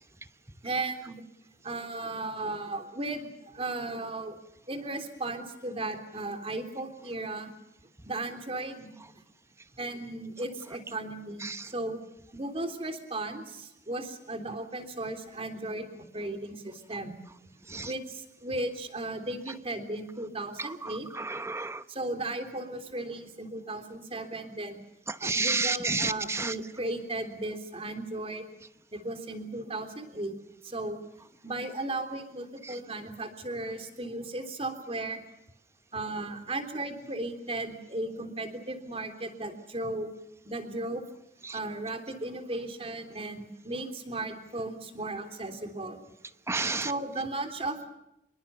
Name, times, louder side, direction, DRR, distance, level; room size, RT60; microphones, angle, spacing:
voice 1, 0.6-1.2 1.6-4.4 4.7-7.5 8.1-8.9 9.8-12.0 12.3-17.2 17.8-21.1 21.9-24.8 25.2-28.5 28.9-30.4 30.6-31.0 31.4-35.2 35.9-40.1 40.4-41.0 41.5-46.0 46.8-47.9, right 2 dB, 35° right, 6 dB, 3.5 m, -36 dB
voice 2, 21.2-21.8 25.2-26.5 46.5-46.9, right 3 dB, 15° right, 12 dB, 0.9 m, -29 dB
26.5 x 23.5 x 7.0 m, 0.83 s
head